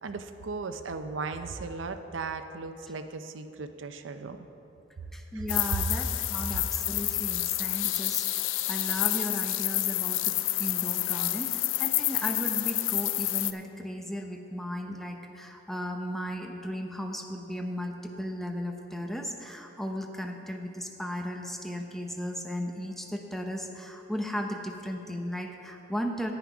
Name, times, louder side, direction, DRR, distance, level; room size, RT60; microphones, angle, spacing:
voice 1, 0.0-4.5 5.3-5.4 5.7-5.8 6.5-6.7, right 4 dB, 90° right, 8 dB, 0.6 m, -36 dB
voice 2, 5.1-26.3, equal, ahead, 3 dB, 0.7 m, -36 dB
sound 1, 5.5-13.5, left 15 dB, 85° left, 0.4 m, -29 dB
10.5 x 9.2 x 4.9 m, 2.9 s
head